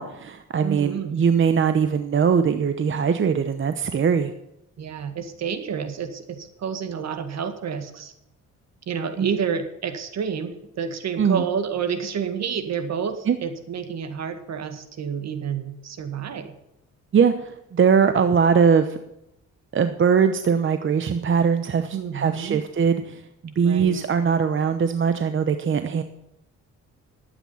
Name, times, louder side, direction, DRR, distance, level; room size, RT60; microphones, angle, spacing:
voice 1, 0.0-4.3 9.2-9.3 11.2-11.4 13.3-13.4 17.1-19.0 19.7-26.0, right 6 dB, 40° right, 9 dB, 0.9 m, -21 dB
voice 2, 0.6-1.2 4.8-8.1 8.9-16.5 21.9-22.6 23.6-24.0, right 7 dB, 60° right, 8 dB, 1.9 m, -29 dB
12.5 x 9.0 x 5.7 m, 0.84 s
cardioid pair, 90°, 30 cm